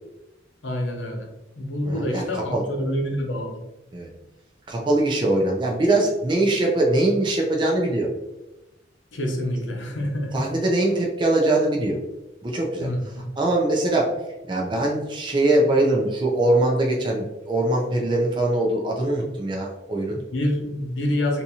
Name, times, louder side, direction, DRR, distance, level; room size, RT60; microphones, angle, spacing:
voice 1, 0.6-1.3 1.6-3.6 9.1-10.4 12.8-13.1 20.3-21.4, left 1 dB, 75° left, 2 dB, 0.7 m, -27 dB
voice 2, 1.8-2.6 3.9-4.1 4.7-8.1 10.3-12.0 12.4-12.9 13.4-14.2 14.5-20.2, right 2 dB, 25° right, -1 dB, 0.5 m, -22 dB
3.5 x 2.7 x 2.8 m, 0.98 s
head